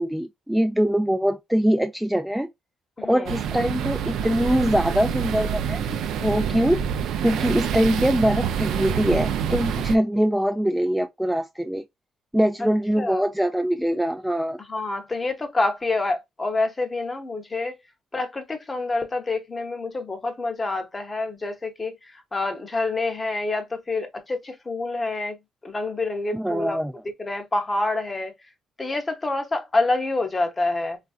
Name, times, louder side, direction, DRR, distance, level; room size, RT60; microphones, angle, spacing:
voice 1, 0.0-2.5 3.1-5.9 6.2-6.8 7.2-11.8 12.3-14.6 26.3-26.9, equal, 5° right, 0.3 m, -23 dB
voice 2, 3.0-3.3 13.0-13.2 14.7-17.8 18.1-22.0 22.3-25.4 25.6-26.8 27.2-28.3 28.8-31.0, left 2 dB, 25° left, 0.8 m, -27 dB
sound 1, 3.3-10.0, right 8 dB, 80° right, 0.4 m, -27 dB
3.3 x 2.4 x 2.4 m
cardioid pair, 90°, 0 cm